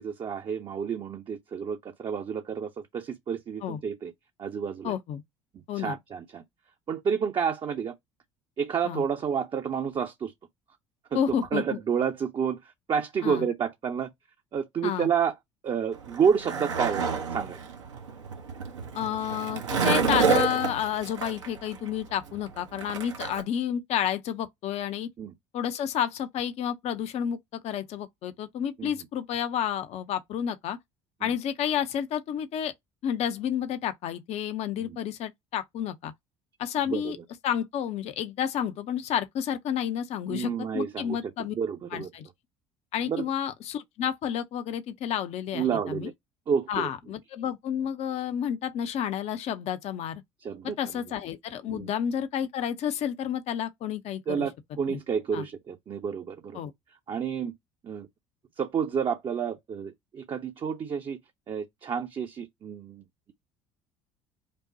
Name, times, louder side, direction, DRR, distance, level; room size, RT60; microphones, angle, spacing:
voice 1, 0.0-4.1 4.4-4.9 5.7-6.4 6.9-7.9 8.6-10.3 11.1-14.1 14.5-15.3 15.6-17.6 25.2-25.3 28.8-28.9 31.2-31.3 34.8-35.0 36.9-37.1 40.3-41.3 41.6-42.1 43.1-43.2 45.5-46.1 46.5-46.9 50.4-50.8 51.7-51.9 54.3-56.6 57.1-57.5 57.8-58.1 58.6-61.2 61.5-63.3, right 7 dB, 30° right, 0.7 m, -30 dB
voice 2, 4.8-5.2 5.7-6.0 8.8-9.0 11.1-11.6 13.2-13.5 14.8-15.1 18.9-25.1 25.5-30.8 31.2-32.7 33.0-36.1 36.6-37.2 37.4-41.6 41.9-42.3 42.9-46.1 46.7-50.2 50.6-54.5 54.9-55.0 55.3-55.4 56.5-56.7, left 9 dB, 45° left, 0.7 m, -30 dB
Skateboard, 15.9-23.4, right 5 dB, 75° right, 1.0 m, -29 dB
5.3 x 2.2 x 2.7 m
figure-of-eight pair, 60°, 16 cm